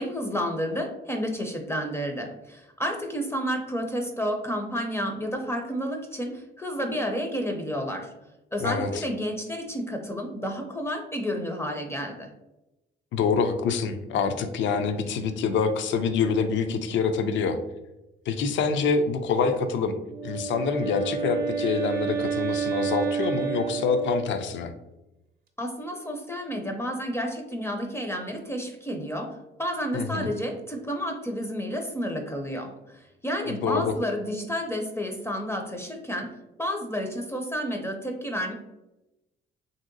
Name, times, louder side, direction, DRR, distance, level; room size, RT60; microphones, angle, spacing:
voice 1, 0.0-8.1 8.5-12.3 25.6-36.3 36.6-38.5, equal, 15° left, 3 dB, 0.4 m, -31 dB
voice 2, 8.6-9.0 13.1-17.6 18.3-19.9 20.2-24.7 29.9-30.3 33.5-33.9, left 5 dB, 70° left, 8 dB, 0.4 m, -26 dB
Wind instrument woodwind instrument, 20.0-24.6, right 7 dB, 50° right, 0.6 m, -30 dB
3.0 x 2.7 x 2.5 m, 0.96 s
cardioid pair, 90°, 20 cm